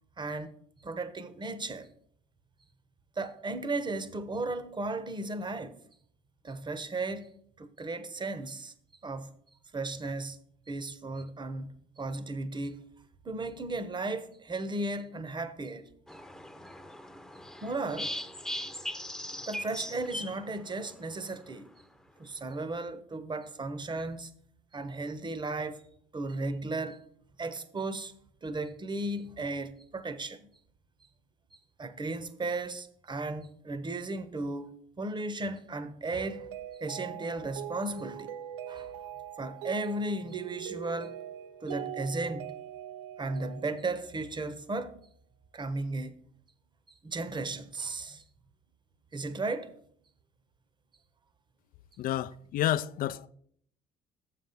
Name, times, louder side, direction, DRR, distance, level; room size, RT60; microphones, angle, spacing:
voice 1, 0.2-0.5 0.8-1.9 3.2-5.8 6.4-8.7 9.0-9.3 9.7-10.4 10.7-11.7 12.0-12.8 13.2-15.8 17.6-18.1 19.3-21.7 22.2-24.3 24.7-25.8 26.1-27.0 27.4-28.1 28.4-30.5 31.8-36.5 36.8-38.3 38.7-38.9 39.4-41.1 41.6-42.5 43.2-44.9 45.5-46.2 47.0-48.2 49.1-49.7, right 2 dB, 25° right, 0.9 m, -35 dB
sound 1, 16.1-21.1, left 1 dB, 5° left, 0.8 m, -40 dB
Mallet percussion, 36.2-44.3, right 10 dB, 85° right, 0.4 m, -42 dB
voice 2, 52.0-53.3, left 12 dB, 55° left, 0.4 m, -30 dB
7.2 x 5.7 x 5.4 m
hypercardioid pair, 65°, 17 cm